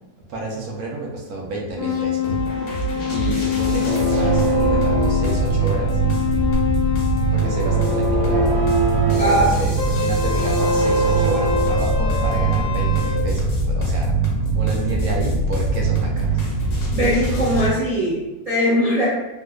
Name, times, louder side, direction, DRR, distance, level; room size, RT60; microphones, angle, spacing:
voice 1, 0.3-2.5 3.1-6.0 7.3-8.6 9.1-14.2 14.5-16.3, right 2 dB, 65° right, -1 dB, 1.0 m, -30 dB
sound 1, 1.8-7.9 9.8-13.2, left 8 dB, 55° left, 1.0 m, -25 dB
sound 2, 2.2-17.7, right 3 dB, 75° left, 1.5 m, -22 dB
sound 3, 3.8-13.4, right 3 dB, 85° right, 1.3 m, -25 dB
voice 2, 16.9-19.1, equal, 40° right, -11 dB, 0.5 m, -20 dB
3.7 x 2.7 x 2.2 m, 1.0 s
omnidirectional pair, 2.0 m